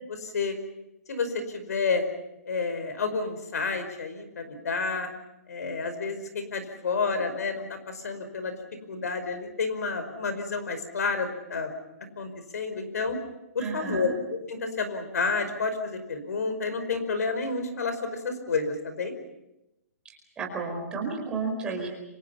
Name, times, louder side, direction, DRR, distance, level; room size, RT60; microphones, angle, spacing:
voice 1, 0.1-0.6 1.1-2.0 2.5-5.1 5.5-8.6 8.9-11.7 12.2-13.2 13.5-19.1, left 4 dB, 75° left, 9 dB, 5.2 m, -30 dB
voice 2, 13.6-14.1 20.4-21.9, right 4 dB, 10° right, 0 dB, 4.8 m, -32 dB
29.0 x 25.5 x 5.7 m, 0.91 s
hypercardioid pair, 170°, 9 cm